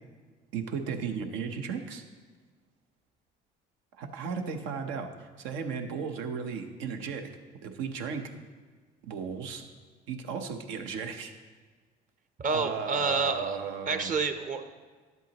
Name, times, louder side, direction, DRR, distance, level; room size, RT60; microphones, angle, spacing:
voice 1, 0.5-2.0 4.0-7.3 7.6-8.3 9.0-9.6 10.1-11.3 12.5-14.1, right 6 dB, 85° right, 6 dB, 0.8 m, -35 dB
voice 2, 12.4-13.6 13.9-14.7, right 4 dB, 40° right, 8 dB, 0.8 m, -28 dB
11.0 x 8.1 x 2.9 m, 1.4 s
supercardioid pair, 85°, 20 cm